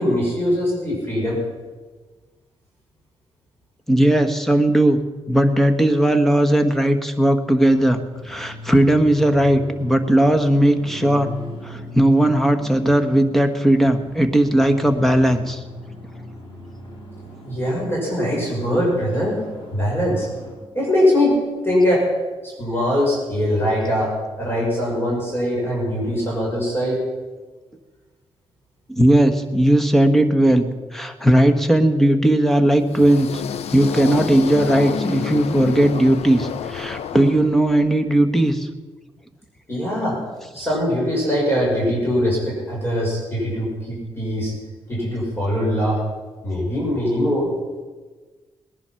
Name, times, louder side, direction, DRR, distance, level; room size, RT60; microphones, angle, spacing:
voice 1, 0.0-1.4 17.4-19.4 19.7-20.3 20.7-21.4 21.6-22.1 22.4-27.0 39.7-40.2 40.5-44.5 44.9-46.0 46.4-47.5, equal, 20° left, -4 dB, 5.9 m, -22 dB
voice 2, 3.9-5.0 5.3-11.3 11.6-15.6 28.9-33.4 33.7-38.7, right 1 dB, 5° left, 6 dB, 1.3 m, -17 dB
sound 1, 8.1-20.5, left 1 dB, 55° left, 4.8 m, -39 dB
sound 2, 32.8-37.9, left 7 dB, 85° left, 0.7 m, -29 dB
19.0 x 10.5 x 5.8 m, 1.3 s
cardioid pair, 105°, 10 cm